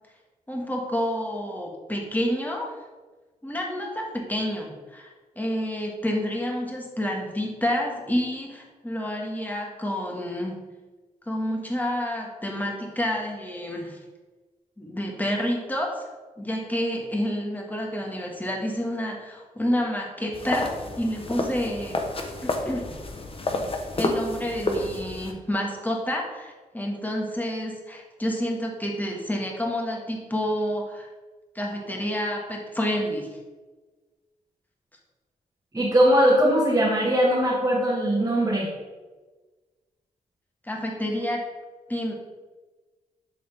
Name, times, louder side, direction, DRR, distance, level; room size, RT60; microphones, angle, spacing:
voice 1, 0.5-2.7 3.4-10.6 11.3-14.0 14.8-16.0 16.4-22.0 22.4-23.0 24.0-31.1 31.6-33.3 40.6-41.4 41.9-42.1, equal, 10° left, -1 dB, 1.7 m, -29 dB
sound 1, 20.3-25.3, left 2 dB, 35° left, 1.0 m, -30 dB
voice 2, 35.7-38.7, equal, 20° right, -6 dB, 1.8 m, -20 dB
10.5 x 3.9 x 3.5 m, 1.3 s
cardioid pair, 55°, 15 cm